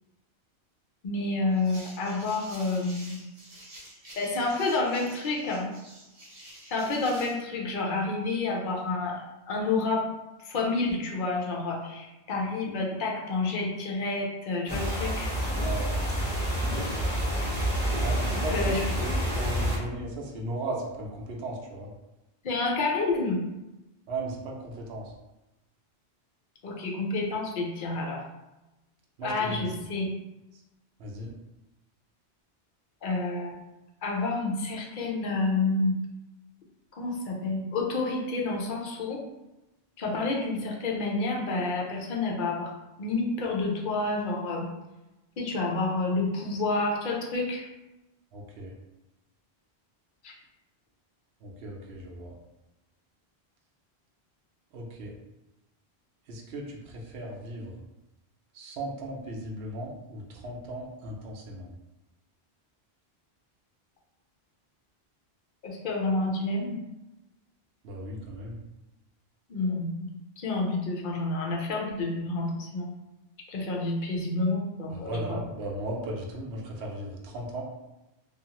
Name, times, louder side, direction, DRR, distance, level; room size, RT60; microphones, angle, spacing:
voice 1, 1.0-3.2 4.2-5.7 6.7-9.2 9.5-10.1 10.4-15.3 18.3-18.8 22.4-23.4 26.6-28.2 29.2-30.1 33.0-33.6 34.0-36.0 36.9-39.2 40.0-42.7 43.0-44.7 45.4-47.7 50.2-50.3 65.6-66.8 69.5-70.1 70.4-72.9 73.5-75.4, left 3 dB, 55° left, -1 dB, 0.7 m, -29 dB
sound 1, 1.5-7.4, right 1 dB, 40° right, 0.7 m, -49 dB
sound 2, 14.7-19.8, equal, 25° right, 1.2 m, -28 dB
voice 2, 15.6-16.1 18.0-21.9 24.1-25.1 29.2-29.7 31.0-31.3 48.3-48.7 51.4-52.3 54.7-55.1 56.3-57.8 58.5-61.7 67.8-68.6 74.9-77.6, right 1 dB, 85° right, -1 dB, 0.9 m, -36 dB
2.5 x 2.4 x 2.8 m, 0.99 s
omnidirectional pair, 1.1 m